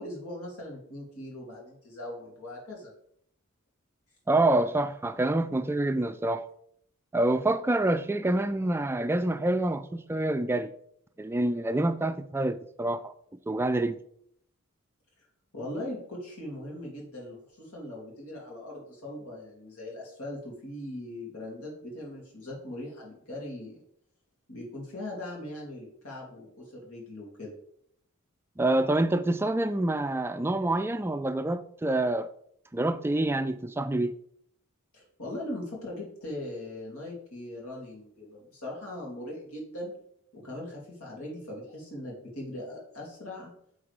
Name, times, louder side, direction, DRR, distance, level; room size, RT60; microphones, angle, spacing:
voice 1, 0.0-2.9 15.5-23.8 24.5-27.5 34.9-39.9 40.3-43.5, left 1 dB, 80° left, 2.6 m, -40 dB
voice 2, 4.3-6.4 7.1-10.7 11.2-13.1 13.5-14.0 28.6-32.3 32.7-34.1, right 2 dB, 10° right, 0.3 m, -27 dB
8.7 x 3.9 x 3.4 m
head